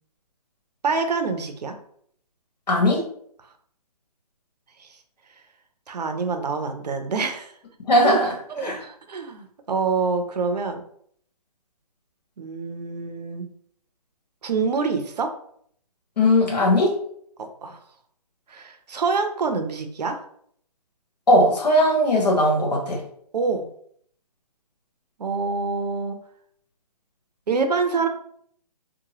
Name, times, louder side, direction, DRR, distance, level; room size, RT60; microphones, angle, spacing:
voice 1, 0.8-1.8 4.8-4.9 5.9-7.5 8.0-8.2 8.5-10.8 12.4-13.5 14.4-15.3 17.4-17.8 18.5-20.2 23.3-23.7 25.2-26.2 27.5-28.1, right 4 dB, 80° right, 6 dB, 0.6 m, -26 dB
voice 2, 2.7-3.0 7.9-8.3 8.6-8.8 16.2-16.9 21.3-23.0, left 1 dB, 80° left, 0 dB, 1.1 m, -18 dB
2.9 x 2.2 x 2.8 m, 0.64 s
hypercardioid pair, 150°, 21 cm